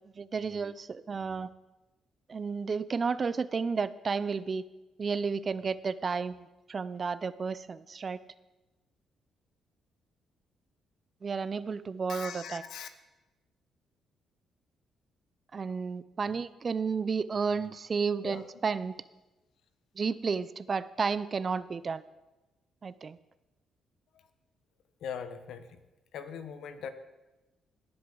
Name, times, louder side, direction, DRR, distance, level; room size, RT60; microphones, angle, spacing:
voice 1, 0.2-1.5 2.3-4.6 5.0-6.4 6.7-8.2 11.2-12.6 15.5-18.9 20.0-22.0 22.8-23.2, right 5 dB, 40° right, 16 dB, 0.5 m, -32 dB
voice 2, 12.1-12.9 18.2-18.5 25.0-25.8 26.1-26.9, left 7 dB, 75° left, 10 dB, 1.0 m, -40 dB
17.5 x 7.9 x 3.9 m, 1.0 s
cardioid pair, 90°, 0 cm